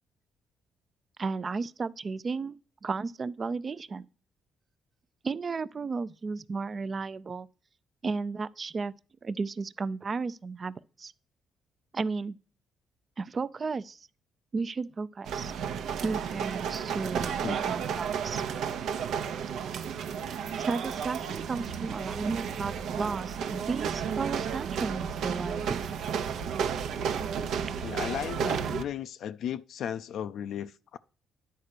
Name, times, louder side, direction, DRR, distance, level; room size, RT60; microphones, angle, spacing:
voice 1, 1.2-4.1 5.2-7.5 8.0-8.9 9.2-11.1 11.9-12.4 13.2-14.1 14.5-15.5 16.0-18.4 20.6-25.8 27.6-27.7, right 4 dB, 40° right, 0.4 m, -34 dB
sound 1, 15.2-28.8, right 7 dB, 80° right, 0.9 m, -32 dB
voice 2, 27.8-31.0, left 9 dB, 75° left, 0.4 m, -35 dB
10.0 x 4.4 x 6.6 m
cardioid pair, 90°, 0 cm